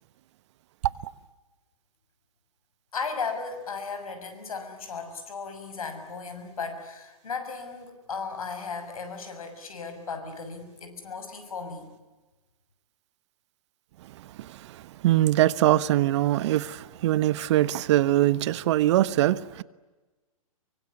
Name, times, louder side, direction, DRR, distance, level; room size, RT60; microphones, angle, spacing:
voice 1, 2.9-11.9, left 5 dB, 80° left, 6.5 m, -36 dB
voice 2, 15.0-19.6, right 14 dB, 55° right, 1.2 m, -22 dB
24.0 x 24.0 x 9.7 m
hypercardioid pair, 120°, 18 cm